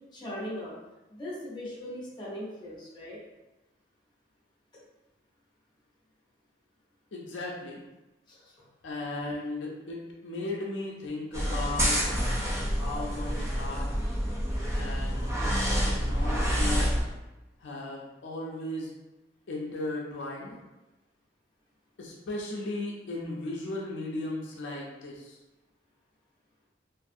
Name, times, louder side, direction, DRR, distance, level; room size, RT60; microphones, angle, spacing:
voice 1, 0.1-0.7 1.1-3.2 8.4-8.6, left 1 dB, 25° left, -6 dB, 0.8 m, -39 dB
voice 2, 7.1-7.8 8.8-12.0 12.7-13.9 14.7-15.3 15.9-16.9 17.6-18.9 19.5-20.6 22.0-25.4, left 2 dB, 75° left, -2 dB, 0.5 m, -36 dB
sound 1, 11.3-17.0, equal, 15° right, 0.4 m, -28 dB
2.5 x 2.4 x 2.5 m, 1.0 s
head